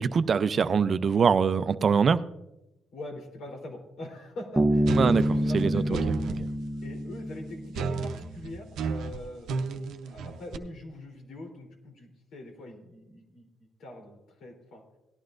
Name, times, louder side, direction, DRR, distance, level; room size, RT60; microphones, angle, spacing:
voice 1, 0.0-2.2 5.0-5.2 5.5-5.8, right 6 dB, 45° right, 0.5 m, -23 dB
voice 2, 2.9-6.1 6.8-9.6 10.1-13.5 13.8-14.8, left 1 dB, 75° left, 3.5 m, -42 dB
Bass guitar, 4.6-8.0, equal, 5° right, 0.9 m, -27 dB
sound 1, 4.9-6.4 7.7-10.6, right 5 dB, 80° right, 0.7 m, -33 dB
18.0 x 11.0 x 2.6 m
cardioid pair, 90°, 0 cm